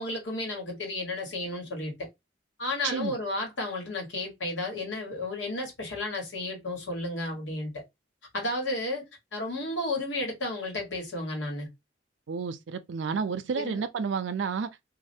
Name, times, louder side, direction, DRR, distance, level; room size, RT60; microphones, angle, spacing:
voice 1, 0.0-1.9 2.6-7.8 8.3-9.0 9.3-11.7 13.5-13.8, left 2 dB, 85° left, 1.5 m, -32 dB
voice 2, 2.8-3.2 12.3-14.7, right 5 dB, 85° right, 0.4 m, -30 dB
3.2 x 2.5 x 2.7 m
head